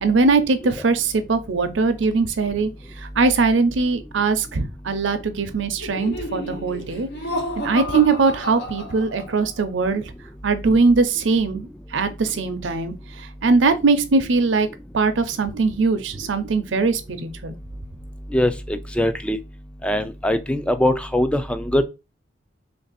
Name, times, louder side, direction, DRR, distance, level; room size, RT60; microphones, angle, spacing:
voice 1, 0.0-2.7 3.2-7.1 7.6-10.0 10.4-14.7 14.9-17.5, right 4 dB, 75° right, 0.6 m, -21 dB
Laughter, 5.8-9.5, equal, 65° left, 0.8 m, -31 dB
voice 2, 18.3-19.4 19.8-21.8, left 1 dB, 5° left, 0.3 m, -22 dB
3.2 x 2.6 x 4.0 m
head